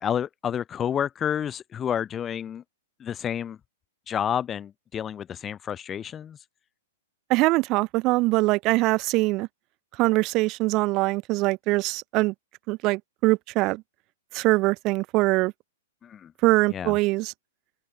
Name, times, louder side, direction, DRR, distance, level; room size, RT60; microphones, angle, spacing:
voice 1, 0.0-2.6 3.0-3.6 4.1-6.4 16.0-16.3 16.7-17.0, left 9 dB, 25° left, 1.6 m, -30 dB
voice 2, 7.3-9.5 10.0-12.3 12.7-13.8 14.3-15.5 16.4-17.3, right 21 dB, 40° right, 2.9 m, -23 dB
open air
hypercardioid pair, 115°, 0 cm